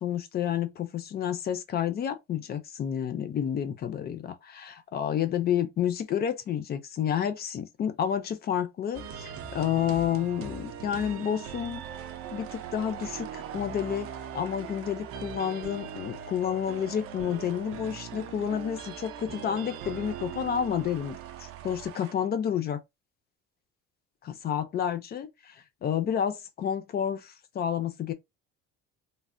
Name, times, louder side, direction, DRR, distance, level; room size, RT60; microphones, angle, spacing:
voice 1, 0.0-11.8 12.3-14.1 14.3-22.8 24.2-28.1, left 9 dB, 35° left, 0.4 m, -30 dB
sound 1, 8.9-22.1, right 8 dB, 50° right, 0.4 m, -40 dB
3.2 x 2.1 x 2.5 m
cardioid pair, 160°, 30 cm